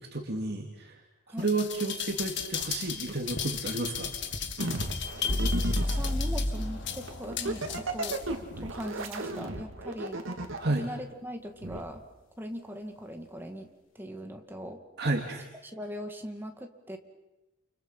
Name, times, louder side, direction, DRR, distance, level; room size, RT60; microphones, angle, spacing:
voice 1, 0.1-1.0 1.4-4.1 10.6-10.8 15.0-15.5, right 2 dB, 55° right, 1 dB, 2.6 m, -31 dB
sound 1, 1.4-8.4 8.8-8.9, left 8 dB, 60° left, 1.9 m, -36 dB
sound 2, 4.6-6.1 7.1-10.8 11.6-11.8, right 2 dB, 80° right, 2.4 m, -34 dB
sound 3, 5.3-9.2, left 1 dB, 80° left, 3.4 m, -32 dB
voice 2, 5.8-8.2 8.6-10.2 10.8-12.0 12.4-13.7 13.9-14.8 15.6-17.0, equal, 10° right, 4 dB, 2.3 m, -40 dB
29.5 x 29.5 x 5.7 m, 0.99 s
head